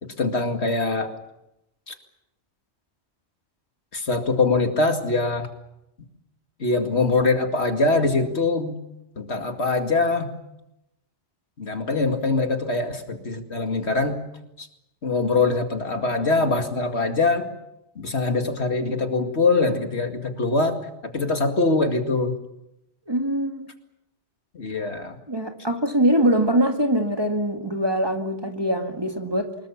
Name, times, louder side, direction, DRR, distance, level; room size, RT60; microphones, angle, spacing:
voice 1, 0.0-1.1 1.9-2.0 3.9-5.5 6.6-8.8 9.2-10.3 11.6-14.2 14.6-14.7 15.0-17.5 18.0-20.8 21.0-22.4 24.5-25.2, left 3 dB, 70° left, 5 dB, 2.5 m, -23 dB
voice 2, 23.1-23.7 25.3-29.6, right 1 dB, 20° right, 4 dB, 1.8 m, -23 dB
24.5 x 21.5 x 7.3 m, 0.86 s
omnidirectional pair, 1.2 m